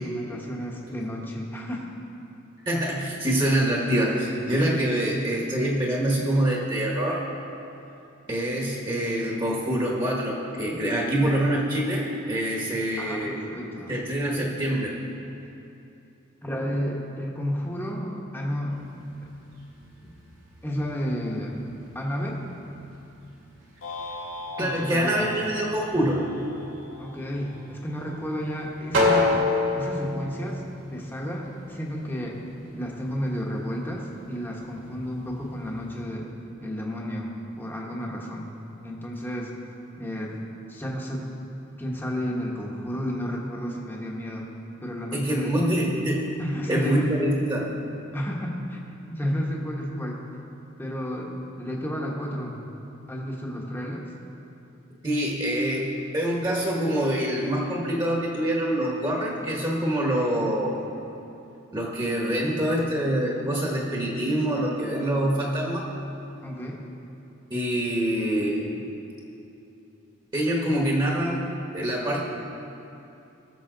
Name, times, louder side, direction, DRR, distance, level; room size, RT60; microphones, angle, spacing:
voice 1, 0.0-1.8 13.0-14.0 16.4-18.8 19.1-19.2 20.0-20.1 20.6-21.6 21.9-22.4 24.6-25.3 27.0-29.5 29.7-30.6 30.9-32.4 32.7-36.3 36.6-38.5 38.8-39.5 40.0-40.4 40.7-41.3 41.8-44.5 44.8-45.5 46.4-47.4 48.1-48.8 49.1-50.2 50.8-52.6 53.1-54.1 66.4-66.8, equal, 10° left, -2 dB, 1.1 m, -32 dB
voice 2, 2.6-7.2 8.3-13.5 13.9-14.9 24.6-26.3 45.1-46.2 46.7-47.6 55.0-60.9 61.7-65.9 67.5-68.8 70.3-71.4 71.7-72.2, right 1 dB, 20° right, -3 dB, 1.3 m, -25 dB
sound 1, 18.7-36.0, left 2 dB, 60° right, 2.5 m, -33 dB
sound 2, 23.8-28.1, left 2 dB, 75° left, 2.1 m, -40 dB
18.5 x 7.1 x 3.9 m, 2.8 s
head